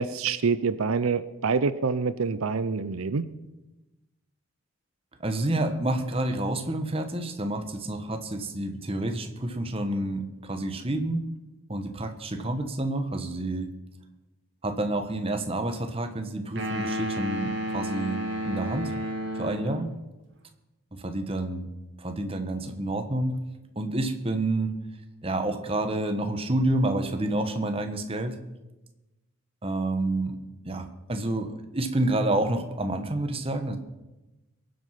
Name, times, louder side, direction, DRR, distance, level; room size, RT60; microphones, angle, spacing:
voice 1, 0.0-3.3, right 5 dB, 85° right, 14 dB, 0.6 m, -26 dB
voice 2, 5.2-11.2 11.7-13.7 14.6-18.9 19.3-19.9 20.9-21.7 22.0-23.4 23.7-24.7 25.2-28.4 29.6-30.4 30.6-33.8, right 1 dB, 25° right, 7 dB, 1.2 m, -29 dB
sound 1, 16.6-19.9, equal, 55° right, 2.1 m, -31 dB
22.0 x 7.9 x 5.9 m, 1.0 s
head